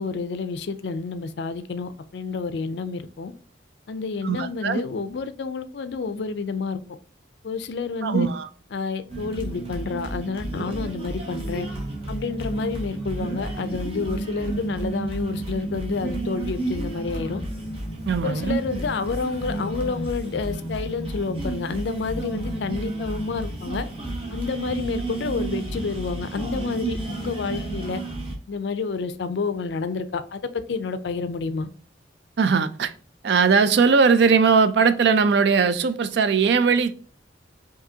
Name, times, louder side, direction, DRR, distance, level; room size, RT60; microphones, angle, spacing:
voice 1, 0.0-3.3 3.9-6.8 7.4-8.3 8.7-11.7 12.1-17.4 18.2-23.9 24.3-28.0 28.5-30.4 30.7-31.7, left 4 dB, 60° left, 0.4 m, -29 dB
voice 2, 4.2-4.8 8.0-8.5 18.1-18.6 32.4-32.9 33.2-37.0, right 5 dB, 60° right, 0.4 m, -19 dB
sound 1, 9.1-28.4, right 2 dB, 30° right, 0.9 m, -31 dB
4.9 x 2.7 x 2.7 m
head